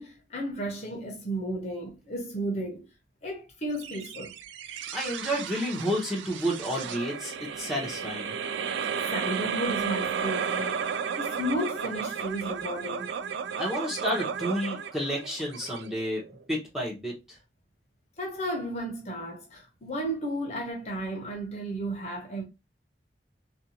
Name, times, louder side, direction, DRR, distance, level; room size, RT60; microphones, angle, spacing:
voice 1, 0.0-2.8 3.2-4.3 9.1-10.8 11.2-13.1 18.2-22.4, right 1 dB, 35° left, 0.6 m, -33 dB
sound 1, 3.8-16.4, right 7 dB, 85° right, 0.3 m, -33 dB
voice 2, 4.9-8.3 13.6-17.4, equal, ahead, 0.7 m, -31 dB
2.5 x 2.2 x 2.7 m
head